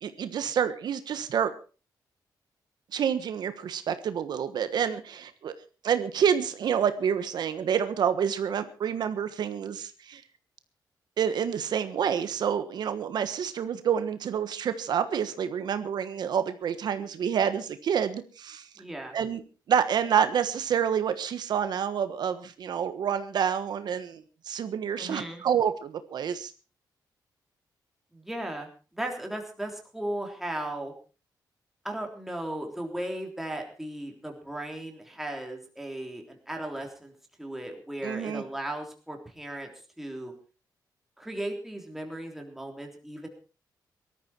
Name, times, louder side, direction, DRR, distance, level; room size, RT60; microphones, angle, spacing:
voice 1, 0.0-1.5 2.9-5.5 5.8-10.2 11.2-18.7 19.1-19.4 19.7-26.5 38.0-38.4, right 8 dB, 65° right, 11 dB, 1.3 m, -28 dB
voice 2, 18.8-19.1 25.0-25.4 28.1-28.7 28.9-30.9 31.8-37.1 37.4-39.7 40.0-40.3 41.2-43.3, right 1 dB, 5° right, 2 dB, 3.5 m, -36 dB
19.0 x 13.5 x 4.4 m, 0.35 s
cardioid pair, 125°, 8 cm